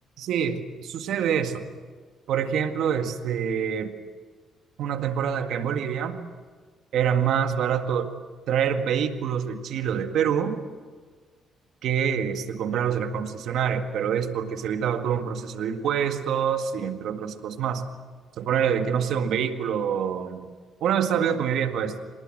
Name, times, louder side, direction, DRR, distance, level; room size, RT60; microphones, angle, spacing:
voice 1, 0.2-1.7 2.3-3.9 4.8-6.2 6.9-8.1 8.5-10.6 11.8-17.9 18.4-20.5 20.8-21.9, right 8 dB, 75° right, 7 dB, 1.9 m, -26 dB
26.5 x 19.5 x 7.8 m, 1.5 s
cardioid pair, 90°, 0 cm